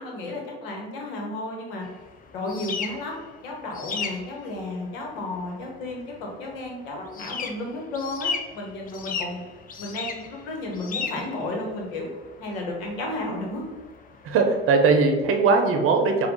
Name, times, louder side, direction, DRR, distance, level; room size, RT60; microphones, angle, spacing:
voice 1, 0.0-1.8 2.3-3.2 3.4-9.4 9.8-12.1 12.4-13.6, left 2 dB, 70° left, 0 dB, 1.2 m, -33 dB
sound 1, 1.8-15.0, left 5 dB, 30° left, 0.5 m, -37 dB
voice 2, 14.2-16.3, right 4 dB, 45° right, 4 dB, 0.8 m, -20 dB
4.5 x 2.5 x 3.8 m, 1.2 s
hypercardioid pair, 65°, 31 cm